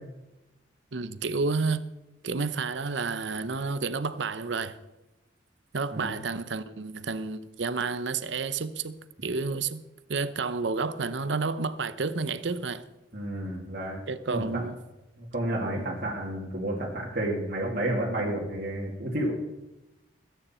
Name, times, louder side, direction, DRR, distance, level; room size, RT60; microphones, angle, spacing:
voice 1, 0.9-1.8 2.2-4.8 5.7-9.8 10.1-12.8 14.1-14.7 15.8-15.9, right 4 dB, 75° right, 0.8 m, -30 dB
voice 2, 13.1-14.0 14.3-14.7 15.2-19.3, right 1 dB, 50° right, 2.5 m, -31 dB
20.5 x 9.4 x 4.4 m
head